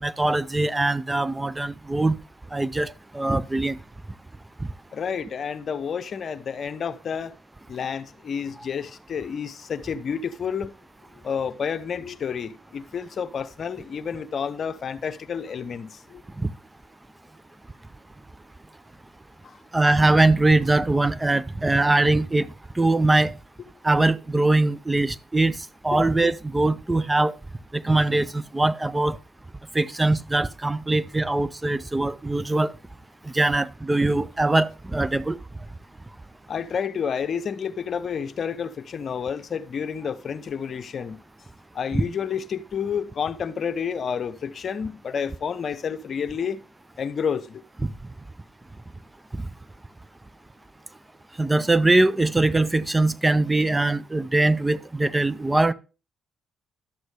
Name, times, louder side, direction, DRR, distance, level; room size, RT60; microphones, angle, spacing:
voice 1, 0.0-2.2 2.5-3.8 16.4-16.5 19.7-22.5 22.8-23.3 23.8-25.6 25.8-27.3 27.7-29.2 29.7-32.7 33.3-35.4 41.9-42.0 49.3-49.4 51.4-55.7, right 2 dB, 15° right, 0.5 m, -22 dB
voice 2, 4.9-7.3 7.7-10.7 11.2-16.2 19.4-19.6 25.9-26.0 36.5-41.2 41.7-46.6 47.0-47.6, left 7 dB, 55° left, 0.7 m, -30 dB
11.5 x 7.9 x 3.3 m
supercardioid pair, 60°, 0 cm